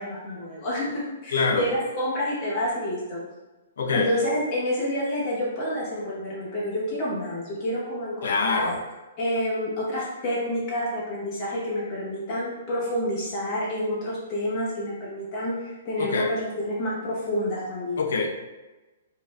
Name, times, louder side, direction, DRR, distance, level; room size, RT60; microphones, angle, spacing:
voice 1, 0.0-3.2 3.9-8.6 9.2-18.0, equal, 25° left, -7 dB, 1.1 m, -28 dB
voice 2, 1.3-1.7 3.8-4.1 8.2-8.8 16.0-16.3 18.0-18.4, left 4 dB, 65° left, 4 dB, 0.5 m, -25 dB
4.6 x 2.5 x 2.3 m, 1.1 s
hypercardioid pair, 170°, 0 cm